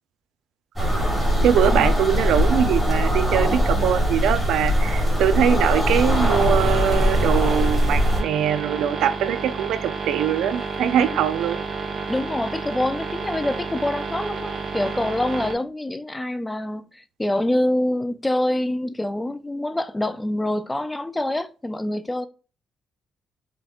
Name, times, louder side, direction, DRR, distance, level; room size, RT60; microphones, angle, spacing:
sound 1, 0.8-8.2, equal, 5° right, 1.6 m, -21 dB
voice 1, 1.4-11.6, right 9 dB, 85° right, 0.3 m, -22 dB
sound 2, 6.1-15.6, right 4 dB, 45° right, 0.8 m, -31 dB
voice 2, 12.1-22.3, left 1 dB, 15° left, 0.3 m, -26 dB
5.0 x 2.9 x 2.3 m
cardioid pair, 90°, 0 cm